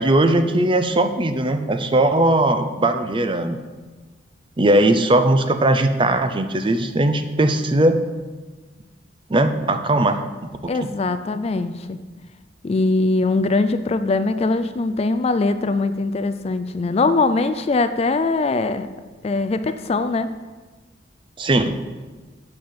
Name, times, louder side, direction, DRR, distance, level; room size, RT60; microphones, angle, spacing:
voice 1, 0.0-3.6 4.6-7.9 9.3-10.2 10.6-10.7 21.4-21.7, right 1 dB, 30° right, 8 dB, 0.6 m, -19 dB
voice 2, 10.7-12.0 12.6-18.9 19.2-20.3, left 3 dB, 35° left, 11 dB, 0.4 m, -21 dB
7.8 x 5.7 x 6.9 m, 1.3 s
head